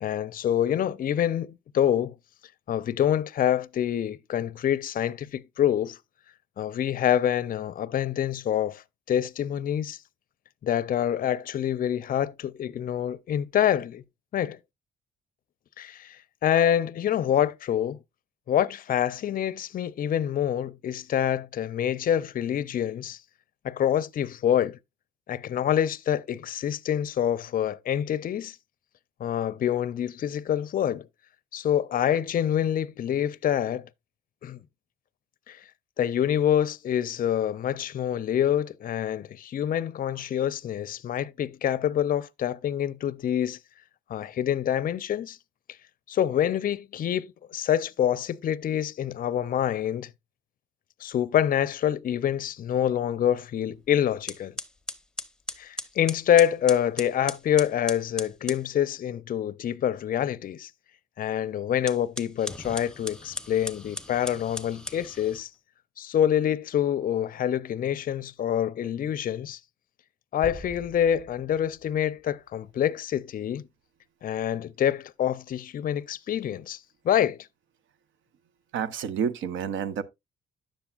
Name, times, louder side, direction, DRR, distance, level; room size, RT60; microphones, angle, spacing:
voice 1, 0.0-2.1 2.7-6.0 6.6-8.8 9.1-10.0 10.6-14.0 14.3-14.6 15.8-18.0 18.5-23.2 23.6-24.8 25.3-28.6 29.2-31.1 31.5-33.8 34.4-34.6 35.5-35.6 36.0-43.6 44.1-45.4 46.1-50.1 51.0-54.5 55.6-60.7 61.2-65.5 66.0-69.6 70.3-73.6 74.2-76.8 77.0-77.4, left 10 dB, 45° left, 0.5 m, -26 dB
sound 1, 53.7-53.9 54.3-58.7 61.7-65.4, left 1 dB, 5° left, 0.8 m, -38 dB
sound 2, 70.4-73.0, right 1 dB, 35° right, 5.9 m, -46 dB
voice 2, 78.7-80.0, right 7 dB, 75° right, 0.8 m, -29 dB
10.0 x 7.0 x 2.4 m
cardioid pair, 90°, 20 cm